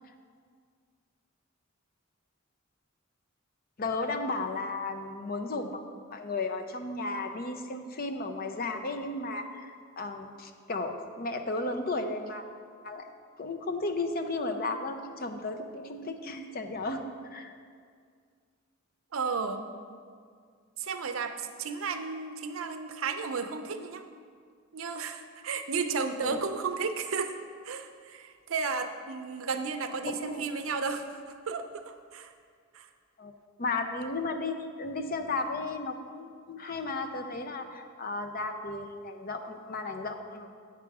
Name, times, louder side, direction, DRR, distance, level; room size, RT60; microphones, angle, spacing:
voice 1, 3.8-5.8 6.1-12.4 12.8-13.0 13.4-17.0 17.3-17.5 26.2-26.4 30.0-30.4 33.2-33.3 33.6-40.5, left 3 dB, 45° left, 6 dB, 0.6 m, -34 dB
voice 2, 19.1-19.7 20.8-24.0 24.7-27.4 27.6-31.2 31.5-32.3 32.7-32.9, right 5 dB, 85° right, 8 dB, 0.6 m, -33 dB
8.4 x 6.0 x 4.7 m, 2.1 s
head